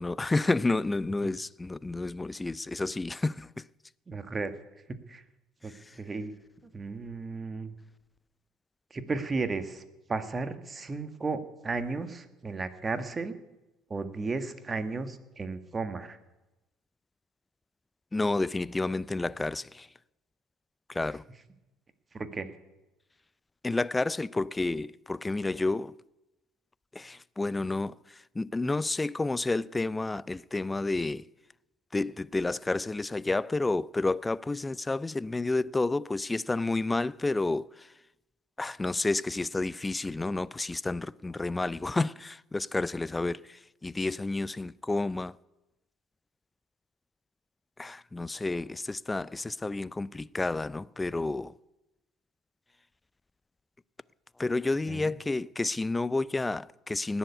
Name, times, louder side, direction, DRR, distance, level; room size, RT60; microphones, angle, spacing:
voice 1, 0.0-3.6 18.1-19.9 20.9-21.2 23.6-25.9 26.9-27.9 28.4-31.3 31.9-37.9 38.6-45.3 47.8-51.5 54.4-57.2, left 2 dB, 15° left, 0.4 m, -30 dB
voice 2, 4.1-4.5 5.1-5.2 5.6-6.3 6.7-7.7 8.9-9.8 10.1-13.3 13.9-16.2 22.1-22.5 54.9-55.2, right 3 dB, 25° right, 1.6 m, -34 dB
18.5 x 7.2 x 9.5 m
hypercardioid pair, 65°, 0 cm